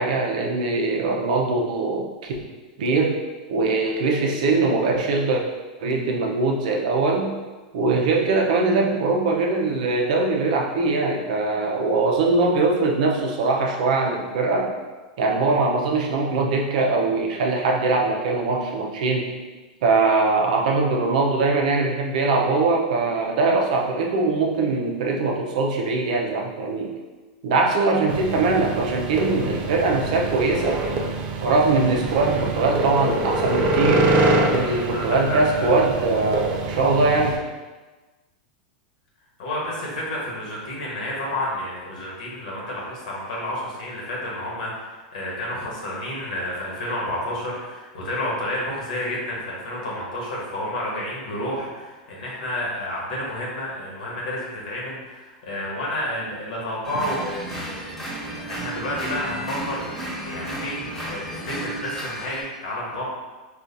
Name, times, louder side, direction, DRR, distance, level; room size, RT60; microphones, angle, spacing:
voice 1, 0.0-2.3 2.8-3.2 3.5-5.4 5.8-7.3 7.7-14.7 15.2-19.3 19.8-26.9 27.4-30.8 31.4-37.4, right 3 dB, 70° right, 0 dB, 0.6 m, -22 dB
sound 1, 28.1-37.4, right 2 dB, 30° right, 0.4 m, -25 dB
voice 2, 34.9-35.7 39.4-63.1, left 1 dB, 80° left, -4 dB, 1.1 m, -30 dB
sound 2, 56.8-62.4, right 1 dB, 5° left, 1.3 m, -33 dB
4.2 x 2.4 x 2.6 m, 1.3 s
supercardioid pair, 135°, 4 cm